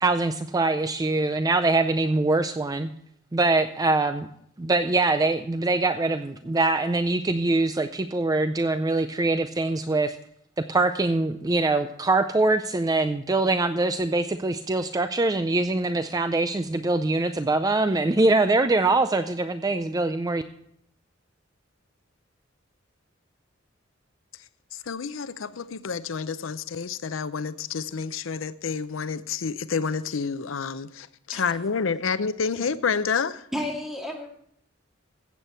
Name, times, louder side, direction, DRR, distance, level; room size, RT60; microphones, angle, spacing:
voice 1, 0.0-2.9 3.3-4.3 4.6-10.2 10.6-20.4, right 2 dB, 20° right, 0.4 m, -23 dB
voice 2, 24.9-33.4, left 5 dB, 90° left, 0.6 m, -29 dB
voice 3, 33.5-34.3, left 1 dB, ahead, 2.2 m, -31 dB
14.5 x 8.3 x 4.3 m
head